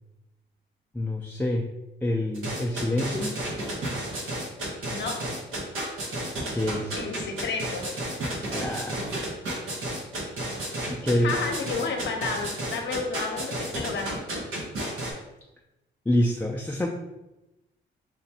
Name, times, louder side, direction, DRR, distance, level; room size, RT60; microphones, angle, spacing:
voice 1, 0.9-1.7 2.0-3.3 6.5-7.0 8.5-9.0 10.9-11.3 16.1-16.9, left 1 dB, 10° left, -3 dB, 0.4 m, -26 dB
sound 1, 2.3-15.1, right 1 dB, 90° right, 0.9 m, -32 dB
voice 2, 4.9-5.4 7.0-7.9 11.2-14.2, left 4 dB, 65° left, 3 dB, 0.7 m, -31 dB
5.0 x 2.2 x 2.8 m, 0.96 s
cardioid pair, 85°, 20 cm